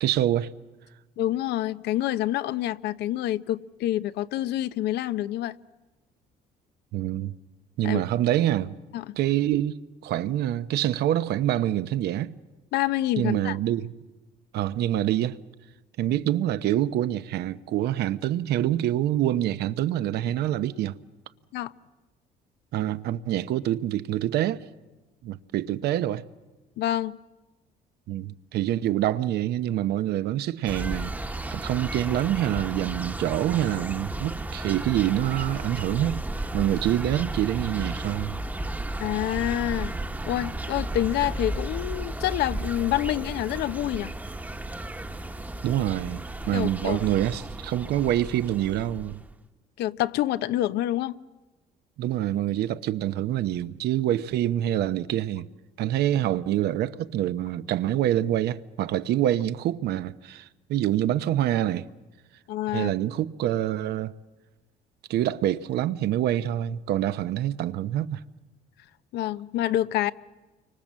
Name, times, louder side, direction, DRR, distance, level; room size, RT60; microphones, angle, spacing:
voice 1, 0.0-0.5 6.9-7.3 7.8-8.8 9.2-12.3 13.2-13.9 14.5-15.4 16.0-21.0 22.7-24.6 25.2-26.2 28.1-36.2 36.5-38.4 45.6-49.2 52.0-55.5 55.8-61.8 62.7-64.1 65.1-68.2, right 12 dB, 75° right, 1.0 m, -26 dB
voice 2, 1.2-5.6 7.8-8.0 8.9-9.1 12.7-13.6 21.5-21.7 26.8-27.2 39.0-39.9 40.2-44.1 46.5-47.1 49.8-51.2 62.5-62.9 69.1-70.1, left 14 dB, 80° left, 0.8 m, -27 dB
sound 1, 30.7-49.3, right 2 dB, 10° right, 1.2 m, -34 dB
30.0 x 25.0 x 7.5 m
cardioid pair, 110°, 17 cm